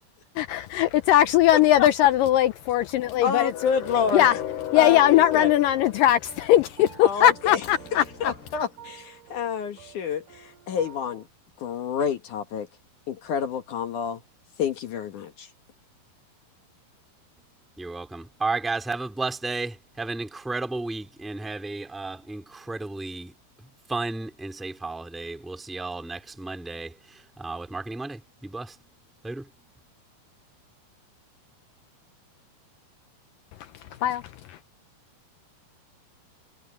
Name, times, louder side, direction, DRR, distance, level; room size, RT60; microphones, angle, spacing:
voice 1, 0.4-8.3 33.6-34.6, left 12 dB, 90° left, 2.0 m, -21 dB
voice 2, 3.2-4.2 4.8-5.5 7.0-7.6 7.9-11.2 11.6-12.7 13.1-14.2 14.6-15.5, left 7 dB, 60° left, 2.5 m, -28 dB
sound 1, 3.8-11.3, right 8 dB, 70° right, 4.7 m, -47 dB
voice 3, 17.8-23.3 23.9-28.7 29.2-29.5, right 3 dB, ahead, 1.5 m, -33 dB
omnidirectional pair, 4.7 m